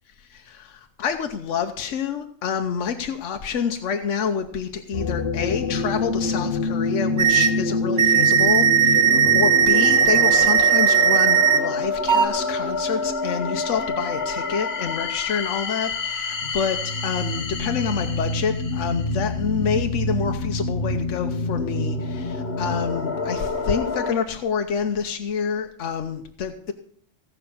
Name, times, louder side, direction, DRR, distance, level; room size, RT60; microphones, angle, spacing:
voice 1, 0.3-0.7 1.0-26.7, left 6 dB, 80° left, 6 dB, 1.2 m, -27 dB
sound 1, 4.9-24.1, left 3 dB, 60° left, 1.2 m, -27 dB
sound 2, 7.2-7.5 8.0-11.6 12.1-12.3, right 8 dB, 45° right, 1.2 m, -17 dB
16.0 x 5.7 x 6.9 m, 0.62 s
omnidirectional pair, 1.2 m